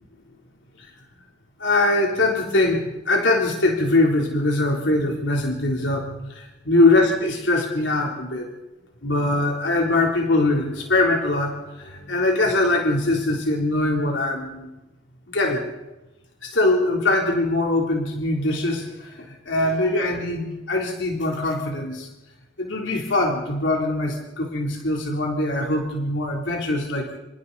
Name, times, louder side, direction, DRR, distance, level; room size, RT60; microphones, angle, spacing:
voice 1, 1.6-8.5 9.0-14.7 15.3-15.6 16.4-22.1 22.6-27.2, left 2 dB, 85° left, 0 dB, 3.6 m, -22 dB
27.5 x 27.0 x 4.2 m, 1.0 s
head